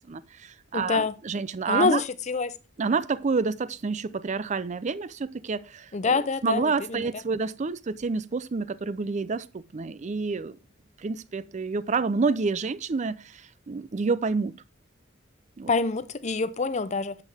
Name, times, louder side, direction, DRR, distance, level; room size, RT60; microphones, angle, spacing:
voice 1, 0.1-2.0 2.8-10.6 11.0-14.5 15.6-15.7, right 4 dB, 35° right, 0.4 m, -29 dB
voice 2, 0.7-1.2 1.7-2.5 5.9-7.0 15.7-17.2, left 4 dB, 35° left, 0.6 m, -26 dB
9.1 x 7.5 x 3.4 m
head